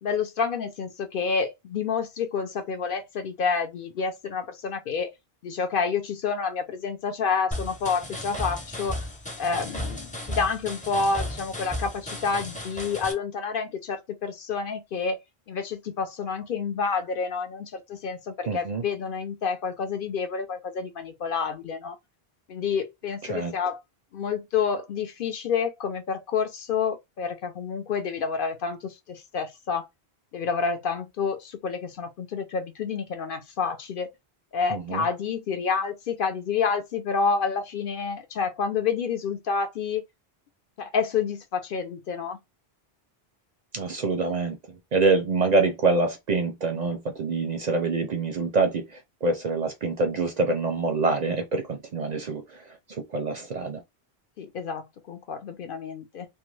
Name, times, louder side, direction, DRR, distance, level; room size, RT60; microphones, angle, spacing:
voice 1, 0.0-5.1 5.4-9.0 9.4-15.2 15.5-22.0 22.5-23.8 24.1-29.9 30.3-34.1 34.5-40.0 40.8-42.4 54.4-56.3, left 5 dB, 60° left, 0.7 m, -29 dB
sound 1, 7.5-13.1, left 1 dB, 10° left, 0.4 m, -34 dB
voice 2, 18.5-18.8 23.3-23.5 34.7-35.0 43.7-44.6 44.9-48.9 49.2-52.6 53.1-53.8, right 3 dB, 55° right, 0.5 m, -25 dB
2.4 x 2.2 x 3.1 m
omnidirectional pair, 1.0 m